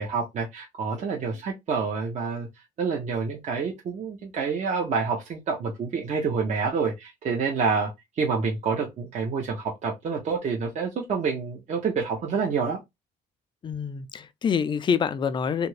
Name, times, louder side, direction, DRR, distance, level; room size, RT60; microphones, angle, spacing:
voice 1, 0.0-2.5 2.8-7.9 8.2-12.8, right 5 dB, 45° right, 0.8 m, -28 dB
voice 2, 13.6-15.7, left 7 dB, 30° left, 0.3 m, -26 dB
2.8 x 2.5 x 3.1 m
cardioid pair, 110°, 17 cm